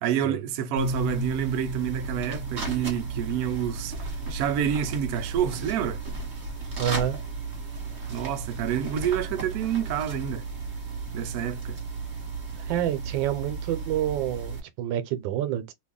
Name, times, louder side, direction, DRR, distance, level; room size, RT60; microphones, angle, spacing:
voice 1, 0.0-4.0 4.3-6.0 8.1-10.5 11.1-11.8, right 9 dB, 70° right, 0.9 m, -28 dB
Keyboard (musical), 0.7-4.4, right 1 dB, 70° left, 1.5 m, -35 dB
sound 1, 0.8-14.6, right 4 dB, 40° right, 1.4 m, -35 dB
voice 2, 6.8-7.2 12.6-15.7, right 11 dB, 90° right, 1.3 m, -28 dB
3.2 x 2.3 x 3.6 m
omnidirectional pair, 2.0 m